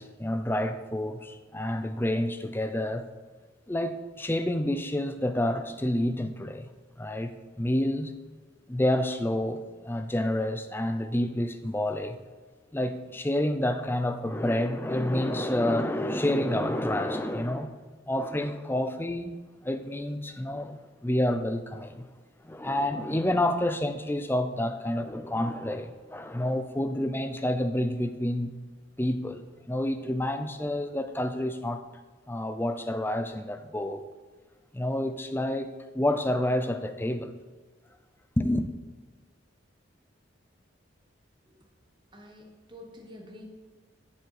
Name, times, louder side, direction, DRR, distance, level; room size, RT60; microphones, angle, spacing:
voice 1, 0.0-3.1 3.7-6.7 7.0-8.1 8.7-12.2 12.7-17.7 18.1-22.1 22.4-28.5 29.0-31.9 32.3-34.0 34.7-37.3 38.4-38.7, left 1 dB, 10° left, 0.5 m, -29 dB
voice 2, 42.1-43.4, left 1 dB, 25° right, 1.4 m, -48 dB
11.5 x 7.1 x 4.9 m
head